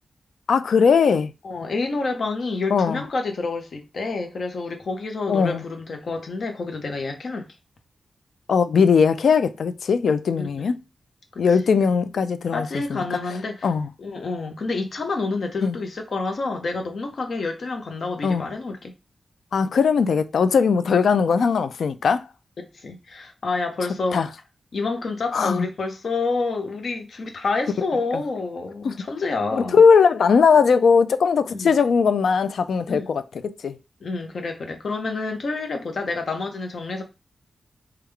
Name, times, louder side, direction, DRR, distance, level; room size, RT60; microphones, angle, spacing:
voice 1, 0.5-1.3 2.7-3.0 5.3-5.6 8.5-10.7 11.4-13.0 13.6-13.9 15.6-15.8 18.2-18.5 19.5-22.3 24.1-24.3 25.3-25.7 28.8-28.9 29.5-33.8, left 5 dB, 85° left, 0.3 m, -19 dB
voice 2, 1.4-7.5 10.4-10.6 11.3-11.4 12.5-13.7 14.0-18.9 22.6-24.2 24.7-29.8 31.5-31.7 32.9-33.1 34.0-37.0, left 3 dB, 65° left, 0.8 m, -28 dB
3.6 x 2.3 x 3.3 m
wide cardioid pair, 105°, 0 cm